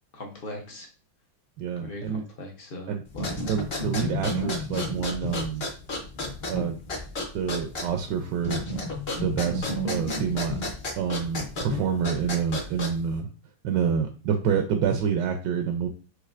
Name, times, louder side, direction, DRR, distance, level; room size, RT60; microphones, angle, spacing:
voice 1, 0.1-0.9 1.8-3.3, left 1 dB, 65° left, 1 dB, 0.5 m, -40 dB
voice 2, 1.6-2.2 2.9-3.0 3.4-5.7 6.5-6.8 7.3-8.7 9.2-10.6 11.0-13.3 13.6-15.9, right 7 dB, 75° right, 6 dB, 1.1 m, -27 dB
sound 1, 3.1-13.2, left 1 dB, 45° left, 0.8 m, -32 dB
6.3 x 2.9 x 2.4 m, 0.38 s
omnidirectional pair, 2.1 m